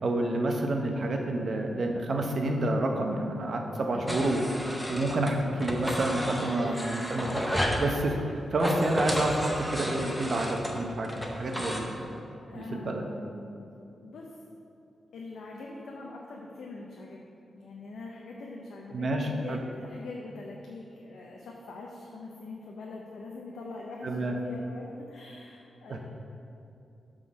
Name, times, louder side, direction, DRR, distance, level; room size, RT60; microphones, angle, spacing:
voice 1, 0.0-4.5 4.9-7.3 7.7-12.1 12.5-13.0 18.9-19.6 24.0-24.3 25.9-26.0, right 2 dB, 50° right, 3 dB, 0.7 m, -29 dB
sound 1, 4.1-5.3 5.6-7.9 8.5-11.8, equal, 5° left, 0.7 m, -31 dB
voice 2, 6.6-7.3 11.7-11.8 12.5-13.7 14.0-14.3 15.1-26.0, left 3 dB, 80° left, -2 dB, 0.6 m, -43 dB
6.1 x 3.7 x 6.1 m, 2.7 s
wide cardioid pair, 105°, 0 cm